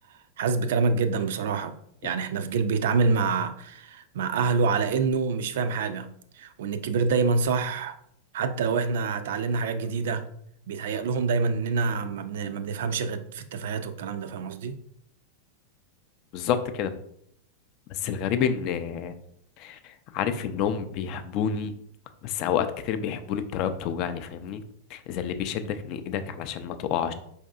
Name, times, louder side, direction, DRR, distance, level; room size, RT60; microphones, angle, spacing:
voice 1, 0.4-1.7 2.0-6.1 6.3-8.0 8.3-10.2 10.7-14.8, right 4 dB, 65° right, 10 dB, 0.3 m, -26 dB
voice 2, 16.3-16.9 17.9-19.1 19.6-21.7 22.2-24.6 24.9-27.1, left 8 dB, 50° left, 10 dB, 0.4 m, -29 dB
4.5 x 2.6 x 2.4 m, 0.70 s
hypercardioid pair, 95°, 0 cm